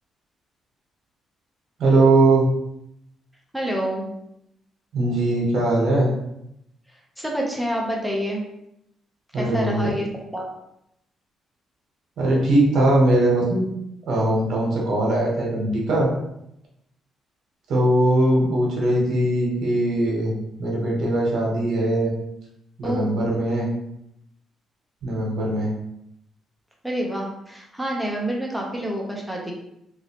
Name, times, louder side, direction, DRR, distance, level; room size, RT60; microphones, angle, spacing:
voice 1, 1.8-2.5 4.9-6.1 9.3-9.9 12.2-13.6 14.1-16.1 17.7-20.3 20.6-22.1 22.8-23.7 25.0-25.7, right 1 dB, 70° right, -3 dB, 1.0 m, -20 dB
voice 2, 3.5-4.0 7.2-8.4 9.3-10.1 10.3-10.5 22.8-23.2 26.8-29.5, right 1 dB, ahead, -1 dB, 0.8 m, -27 dB
3.0 x 2.7 x 2.9 m, 0.80 s
cardioid pair, 90°, 0 cm